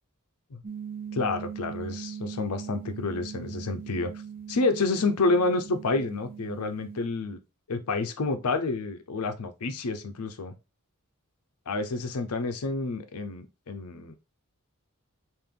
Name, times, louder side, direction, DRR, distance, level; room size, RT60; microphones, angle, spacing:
sound 1, 0.6-7.1, right 7 dB, 40° right, 0.4 m, -40 dB
voice 1, 1.1-4.1 4.5-7.4 7.7-10.5 11.7-14.1, left 3 dB, 85° left, 0.6 m, -29 dB
3.7 x 2.6 x 3.3 m
head